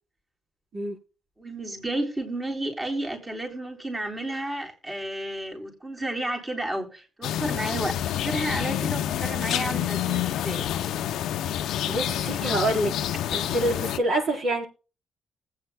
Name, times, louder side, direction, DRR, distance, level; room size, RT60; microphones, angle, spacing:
voice 1, 1.4-8.0 8.2-10.7, right 1 dB, 20° right, 3.9 m, -32 dB
sound 1, 7.2-14.0, left 11 dB, 80° left, 0.6 m, -28 dB
voice 2, 11.9-12.9 13.3-14.7, right 1 dB, 55° right, 4.4 m, -26 dB
20.5 x 8.7 x 2.2 m
cardioid pair, 90°, 0 cm